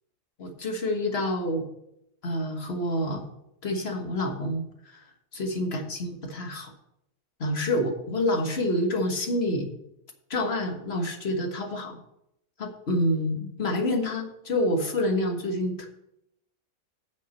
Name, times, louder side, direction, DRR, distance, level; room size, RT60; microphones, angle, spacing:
voice 1, 0.4-1.6 2.2-3.2 3.6-5.0 5.3-6.7 7.4-9.7 10.3-12.0 12.6-15.9, left 1 dB, 45° left, 3 dB, 1.6 m, -28 dB
8.2 x 5.9 x 6.7 m, 0.80 s
omnidirectional pair, 1.5 m